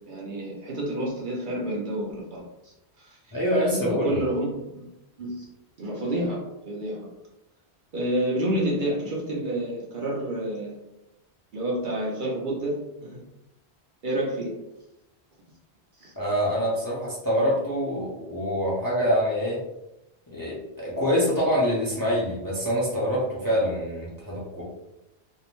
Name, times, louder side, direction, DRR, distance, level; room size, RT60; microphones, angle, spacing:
voice 1, 0.1-3.2 3.5-4.9 5.2-5.5 5.8-7.0 7.9-10.8 11.5-13.2 14.0-14.5 16.0-16.1, right 1 dB, 55° right, -3 dB, 0.7 m, -29 dB
voice 2, 3.3-4.2 16.2-19.6 20.3-24.6, equal, 25° left, -6 dB, 0.5 m, -25 dB
2.7 x 2.1 x 2.9 m, 0.90 s
omnidirectional pair, 1.1 m